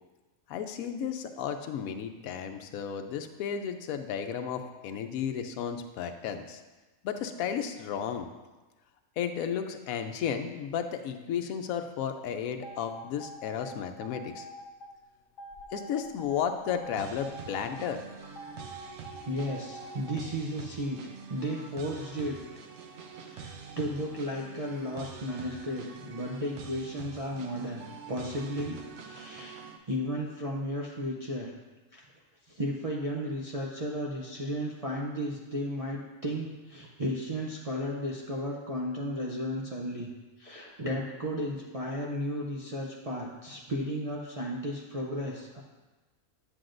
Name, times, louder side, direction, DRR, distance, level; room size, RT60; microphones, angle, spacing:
voice 1, 0.5-6.6 7.0-8.3 9.2-14.5 15.7-18.0, left 8 dB, 85° left, 6 dB, 1.0 m, -33 dB
sound 1, 12.6-14.9 15.4-17.9 18.4-20.1, right 1 dB, 60° left, 0.6 m, -45 dB
sound 2, 17.0-29.8, right 6 dB, 60° right, 0.9 m, -45 dB
voice 2, 19.3-21.0 21.3-22.4 23.1-31.5 31.9-32.0 32.5-40.1 40.4-45.6, equal, 40° right, -3 dB, 0.5 m, -34 dB
8.4 x 7.6 x 2.5 m, 1.2 s
omnidirectional pair, 1.4 m